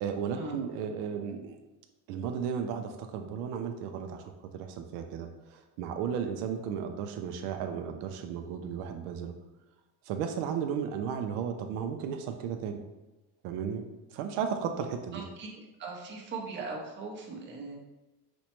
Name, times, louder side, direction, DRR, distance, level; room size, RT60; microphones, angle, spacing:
voice 1, 0.0-1.6 2.1-9.3 10.0-12.8 13.4-13.8 14.1-15.3, right 7 dB, 80° right, 5 dB, 0.5 m, -34 dB
voice 2, 15.1-15.5 15.8-17.8, right 3 dB, 30° right, -1 dB, 0.6 m, -39 dB
5.2 x 2.1 x 2.9 m, 1.0 s
cardioid pair, 150°, 41 cm